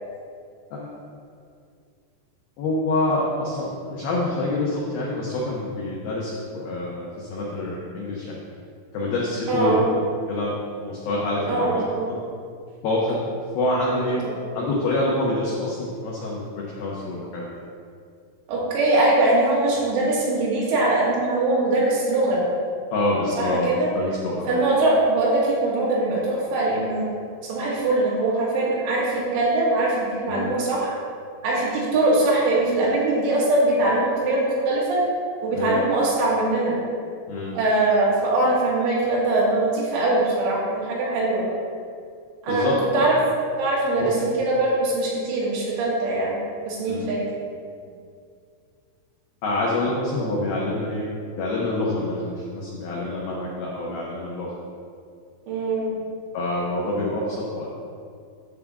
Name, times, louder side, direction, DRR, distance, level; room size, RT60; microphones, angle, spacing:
voice 1, 2.6-8.4 8.9-9.8 10.3-10.5 10.8-11.8 12.1-12.2 12.8-13.2 13.5-14.2 14.5-17.4 22.9-24.6 30.3-30.5 35.5-35.8 37.3-37.5 42.5-43.1 44.0-44.1 46.9-47.2 49.4-51.1 51.4-54.5 56.3-57.7, left 2 dB, 90° left, -4 dB, 2.1 m, -26 dB
voice 2, 9.5-9.9 11.5-12.0 13.8-14.3 18.5-22.4 23.4-23.9 24.5-27.1 27.5-31.0 31.4-35.0 35.4-36.8 37.5-41.5 42.4-42.7 42.9-43.1 43.6-46.4 46.7-47.2 55.5-55.9, right 2 dB, 70° right, -5 dB, 4.0 m, -22 dB
10.5 x 3.7 x 7.0 m, 2.3 s
omnidirectional pair, 5.9 m